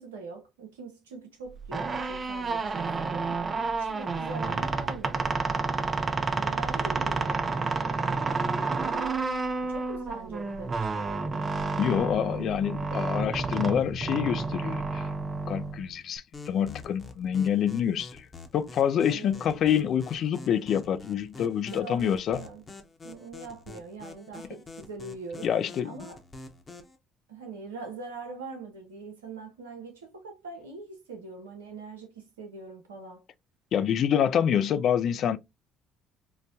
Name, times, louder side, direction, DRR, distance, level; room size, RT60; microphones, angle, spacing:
voice 1, 0.0-3.4 3.8-5.3 6.3-8.0 9.6-11.0 19.0-19.5 21.7-22.6 23.0-25.5 25.8-26.2 27.3-33.2, right 3 dB, 85° right, 0.7 m, -43 dB
sound 1, 1.6-16.2, right 4 dB, 35° right, 0.5 m, -30 dB
voice 2, 11.8-15.1 15.5-18.3 18.5-22.4 25.4-25.9 33.7-35.4, left 9 dB, 55° left, 0.3 m, -27 dB
sound 2, 16.3-27.0, left 3 dB, 30° left, 0.8 m, -46 dB
3.9 x 2.1 x 2.6 m
hypercardioid pair, 55°, 0 cm